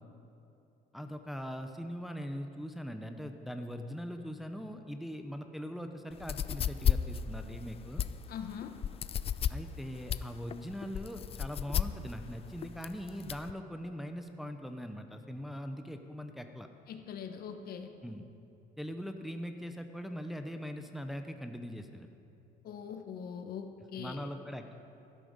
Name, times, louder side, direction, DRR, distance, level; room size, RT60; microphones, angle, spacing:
voice 1, 0.9-8.0 9.5-16.7 18.0-18.3 18.8-22.1 24.0-24.7, equal, ahead, 6 dB, 0.7 m, -41 dB
sound 1, 6.1-13.5, left 9 dB, 35° left, 0.4 m, -33 dB
voice 2, 8.3-8.7 16.9-17.9 22.6-24.3, left 7 dB, 65° left, 6 dB, 1.1 m, -42 dB
12.5 x 11.5 x 5.1 m, 2.8 s
cardioid pair, 110°, 17 cm